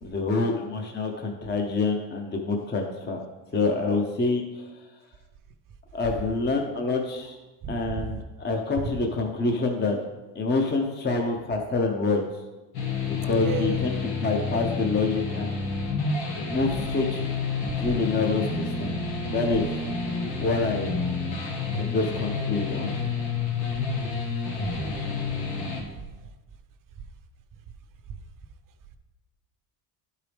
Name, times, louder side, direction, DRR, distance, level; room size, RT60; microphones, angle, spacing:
voice 1, 0.0-3.2 3.5-4.7 5.9-7.4 7.7-10.0 10.3-12.2 13.1-13.9 14.2-15.6 16.5-17.2 17.8-18.4 18.8-18.9 19.3-19.8 20.4-21.0 21.7-22.9, left 3 dB, 20° left, 2 dB, 0.8 m, -26 dB
voice 2, 7.6-8.2 13.3-13.8 17.8-17.9, right 6 dB, 40° right, 8 dB, 0.8 m, -32 dB
sound 1, 12.7-25.8, left 4 dB, 90° left, 1.5 m, -29 dB
10.5 x 4.7 x 3.5 m, 1.1 s
supercardioid pair, 95°, 48 cm